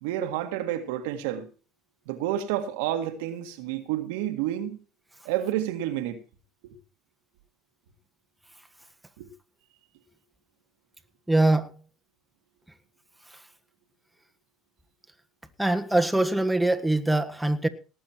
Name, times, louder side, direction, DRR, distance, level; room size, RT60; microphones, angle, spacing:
voice 1, 0.0-1.5 2.1-4.8 5.3-6.2 6.6-6.7 9.2-9.3, right 12 dB, 80° right, 1.7 m, -29 dB
voice 2, 11.3-11.7 15.6-17.7, right 2 dB, 5° right, 1.5 m, -23 dB
18.5 x 8.0 x 4.5 m
hypercardioid pair, 80°, 0 cm